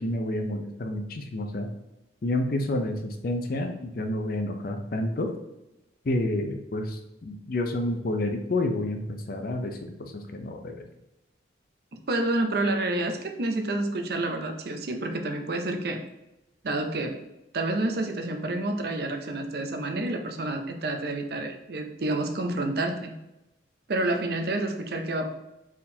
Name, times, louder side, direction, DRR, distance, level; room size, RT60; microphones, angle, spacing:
voice 1, 0.0-1.7 2.2-5.3 6.0-10.8, left 1 dB, 50° left, 5 dB, 0.5 m, -29 dB
voice 2, 12.1-16.0 16.6-17.3 17.5-23.1 23.9-25.3, right 2 dB, 55° right, 5 dB, 0.5 m, -29 dB
4.4 x 3.7 x 2.8 m, 0.92 s
head